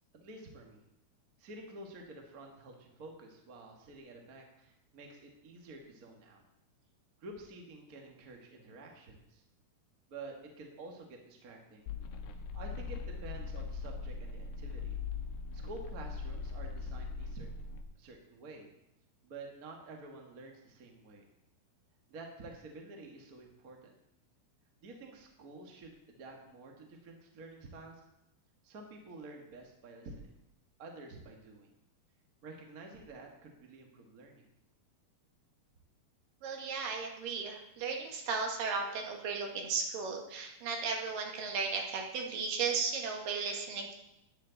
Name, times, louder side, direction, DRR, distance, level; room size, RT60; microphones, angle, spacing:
voice 1, 0.1-0.8 1.4-6.4 7.2-9.4 10.1-11.9 12.5-15.0 15.5-17.5 18.0-18.7 19.2-21.3 22.1-23.9 24.8-28.0 28.6-30.4 30.8-31.7 32.4-34.5, right 2 dB, 80° right, 1 dB, 0.8 m, -50 dB
sound 1, 11.9-17.8, left 4 dB, 90° left, 2.9 m, -40 dB
voice 2, 36.4-43.9, right 5 dB, 65° right, 1 dB, 3.0 m, -35 dB
13.0 x 9.6 x 4.0 m, 0.84 s
omnidirectional pair, 4.5 m